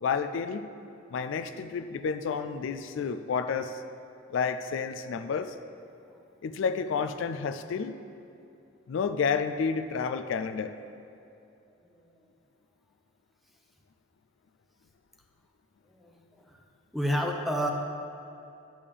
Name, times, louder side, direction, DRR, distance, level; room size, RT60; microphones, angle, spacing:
voice 1, 0.0-0.7 1.1-3.8 4.3-5.6 6.4-8.0 8.9-10.7, left 5 dB, 65° left, 9 dB, 0.3 m, -30 dB
voice 2, 11.7-12.2 15.9-16.6 16.9-17.7, equal, ahead, 2 dB, 0.6 m, -31 dB
10.5 x 3.6 x 6.7 m, 2.6 s
head